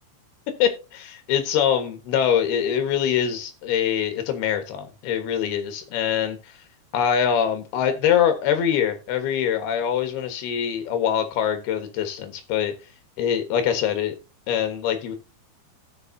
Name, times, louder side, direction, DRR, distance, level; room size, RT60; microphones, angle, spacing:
voice 1, 0.6-6.6 6.9-12.7 13.2-14.2 14.5-15.2, left 9 dB, 75° left, 7 dB, 3.3 m, -24 dB
17.0 x 6.6 x 2.7 m, 0.29 s
omnidirectional pair, 4.6 m